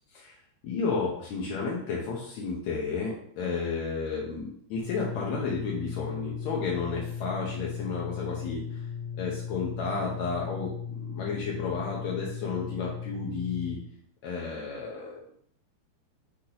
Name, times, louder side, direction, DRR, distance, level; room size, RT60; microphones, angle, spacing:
voice 1, 0.6-8.8 9.2-13.8 14.2-15.3, left 4 dB, 90° left, -3 dB, 1.5 m, -32 dB
sound 1, 4.8-13.7, left 7 dB, 45° right, 1.8 m, -37 dB
8.2 x 2.9 x 4.0 m, 0.64 s
omnidirectional pair, 4.5 m